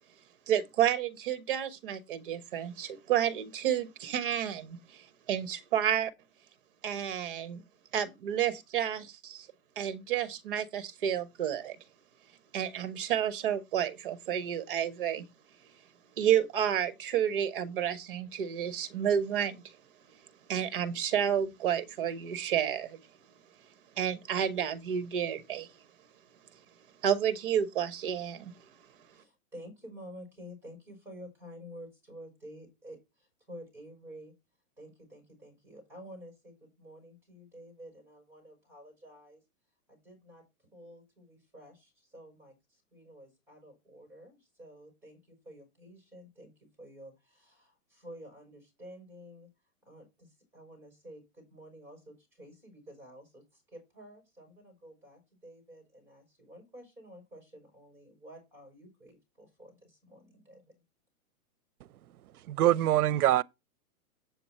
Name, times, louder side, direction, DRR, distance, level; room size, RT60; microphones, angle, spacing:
voice 1, 0.5-6.1 6.8-7.6 7.9-9.5 9.8-11.8 12.5-15.2 16.2-19.6 20.5-23.0 24.0-25.7 27.0-28.5, right 9 dB, 35° right, 1.1 m, -30 dB
voice 2, 29.1-34.3 34.8-39.4 39.9-40.4 40.7-46.5 46.8-49.5 49.8-60.7, equal, 5° right, 4.4 m, -51 dB
voice 3, 62.5-63.4, right 13 dB, 75° right, 0.7 m, -24 dB
8.1 x 7.0 x 4.2 m
hypercardioid pair, 175°, 45 cm